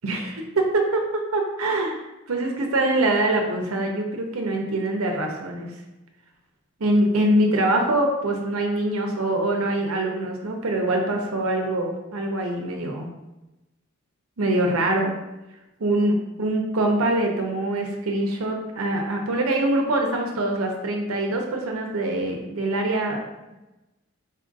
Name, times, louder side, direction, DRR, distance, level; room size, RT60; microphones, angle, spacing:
voice 1, 0.7-5.7 6.8-13.1 14.4-15.1 15.8-23.2, right 1 dB, 90° right, 2 dB, 0.7 m, -24 dB
4.1 x 2.5 x 3.9 m, 0.99 s
head